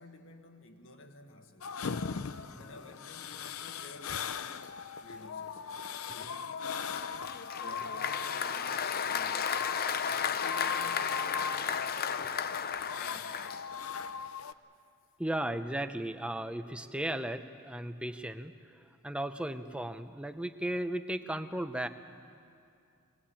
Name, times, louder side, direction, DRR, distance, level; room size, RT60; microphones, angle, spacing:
voice 1, 0.0-1.8 2.6-5.7 6.1-9.6 10.1-12.4 12.9-13.5, left 2 dB, 65° left, 1.6 m, -52 dB
sound 1, 1.6-14.5, left 6 dB, 85° left, 0.6 m, -39 dB
Applause, 6.9-14.0, left 7 dB, 45° left, 0.6 m, -34 dB
voice 2, 15.2-21.9, right 1 dB, 5° right, 0.7 m, -36 dB
23.0 x 19.0 x 8.7 m
head